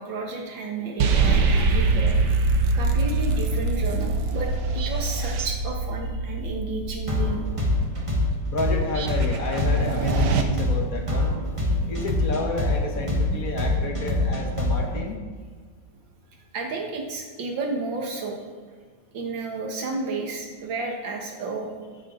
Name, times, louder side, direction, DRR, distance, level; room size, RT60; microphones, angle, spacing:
voice 1, 0.0-2.4 2.7-7.4 16.5-18.4 19.1-21.7, right 3 dB, 90° right, 1 dB, 2.3 m, -32 dB
sound 1, 1.0-10.4, right 3 dB, 70° right, 1.4 m, -24 dB
sound 2, 7.1-15.0, left 1 dB, 20° right, 1.4 m, -24 dB
voice 2, 8.5-11.3 11.9-15.1, left 2 dB, 50° left, 2 dB, 1.6 m, -30 dB
14.5 x 8.3 x 3.9 m, 1.5 s
omnidirectional pair, 2.0 m